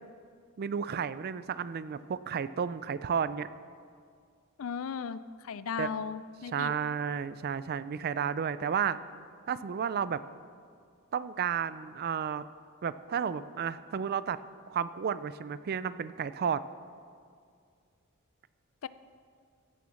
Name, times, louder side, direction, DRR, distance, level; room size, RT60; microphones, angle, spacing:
voice 1, 0.6-3.5 5.8-5.9 6.5-9.0 9.5-10.2 11.1-12.4 12.8-14.4 14.7-16.6, right 7 dB, 45° right, 15 dB, 0.4 m, -32 dB
voice 2, 4.6-5.2 5.4-6.8 18.8-18.9, left 6 dB, 70° left, 15 dB, 0.4 m, -36 dB
15.0 x 7.0 x 6.3 m, 2.2 s
head